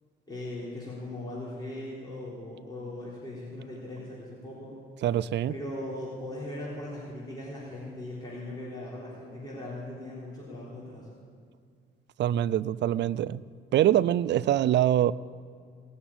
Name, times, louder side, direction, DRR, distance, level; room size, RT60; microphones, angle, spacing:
voice 1, 0.3-4.8 5.5-11.1, left 1 dB, 20° left, 3.8 m, -39 dB
voice 2, 5.0-5.5 12.2-13.4 13.7-15.1, right 12 dB, 60° right, 0.4 m, -24 dB
19.0 x 7.1 x 8.8 m
cardioid pair, 90°, 20 cm